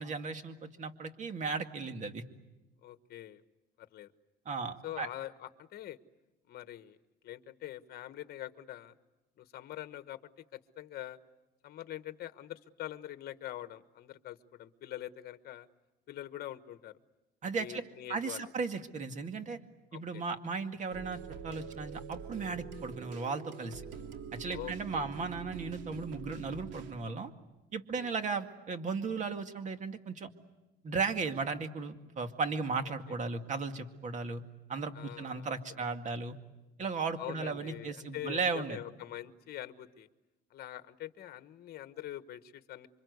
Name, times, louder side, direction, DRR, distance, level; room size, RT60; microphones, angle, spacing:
voice 1, 0.0-2.2 4.5-5.1 17.4-17.8 18.1-19.6 19.9-23.8 24.3-27.3 27.7-30.3 30.8-34.4 34.7-36.4 36.8-38.8, right 4 dB, 40° right, 7 dB, 2.2 m, -36 dB
voice 2, 2.8-3.4 3.8-4.1 4.8-6.0 6.5-7.0 7.2-8.9 9.4-10.2 10.5-11.2 11.6-15.7 16.1-16.9 17.5-18.4 19.9-20.2 24.5-25.1 27.9-28.1 34.9-35.9 37.2-40.1 40.5-42.9, left 13 dB, 55° left, 10 dB, 1.3 m, -44 dB
sound 1, 20.9-26.9, right 6 dB, 80° right, 2.5 m, -45 dB
28.0 x 25.0 x 8.2 m, 1.0 s
cardioid pair, 115°, 19 cm